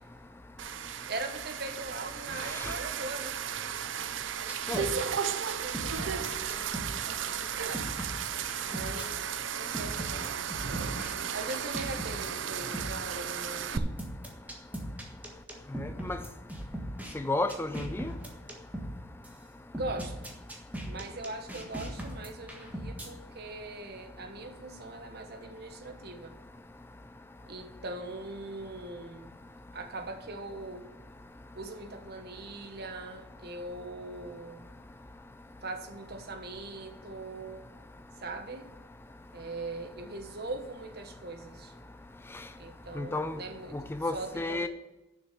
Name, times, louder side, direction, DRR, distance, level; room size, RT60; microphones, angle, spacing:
sound 1, 0.6-13.8, right 8 dB, 75° right, 0.5 m, -35 dB
voice 1, 1.1-3.4 4.3-7.8 8.7-10.4 11.3-13.9 19.8-20.3 20.8-26.3 27.5-29.4 29.7-30.9 31.5-34.7 35.6-37.6 38.2-38.7 39.3-41.7 42.6-43.8 44.1-44.7, right 2 dB, 55° right, 1.1 m, -41 dB
sound 2, 4.5-6.9 7.2-7.3 7.7-9.1 9.7-11.1 11.5-12.3 12.7-12.9 13.7-17.1 17.5-18.9 19.2-19.3 19.7-23.1, right 1 dB, 10° right, 1.5 m, -38 dB
voice 2, 15.8-16.2 17.1-18.1 43.0-43.3 43.7-44.7, left 2 dB, 10° left, 0.4 m, -32 dB
7.1 x 6.5 x 7.4 m
head